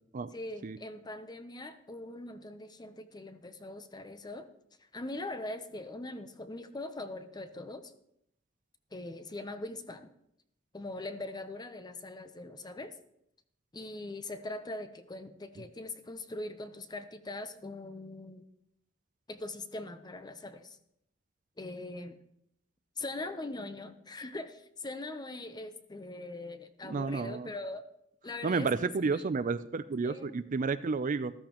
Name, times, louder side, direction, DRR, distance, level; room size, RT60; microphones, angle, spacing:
voice 1, 0.3-4.5 4.9-7.9 8.9-10.1 10.7-12.9 13.7-18.5 19.3-20.8 21.6-22.2 23.0-27.8 28.2-29.2 30.0-30.4, left 2 dB, 20° left, 10 dB, 0.7 m, -41 dB
voice 2, 26.8-27.5 28.4-31.3, right 4 dB, 40° right, 13 dB, 0.4 m, -31 dB
13.5 x 13.5 x 3.0 m, 0.76 s
head